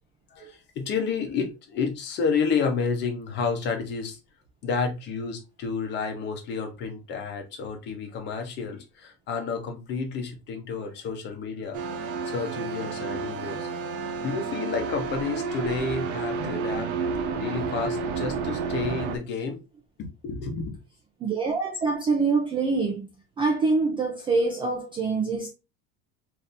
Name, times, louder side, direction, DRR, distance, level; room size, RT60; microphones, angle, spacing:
voice 1, 0.3-4.2 4.6-11.8 12.2-13.7 14.2-16.9 17.3-19.6 20.0-20.7, left 5 dB, 30° left, 0.8 m, -30 dB
sound 1, 11.7-19.2, right 5 dB, 85° right, 1.0 m, -30 dB
voice 2, 21.2-23.1 23.4-25.5, right 4 dB, 15° right, 0.3 m, -25 dB
4.1 x 2.7 x 3.3 m
cardioid pair, 180°, 34 cm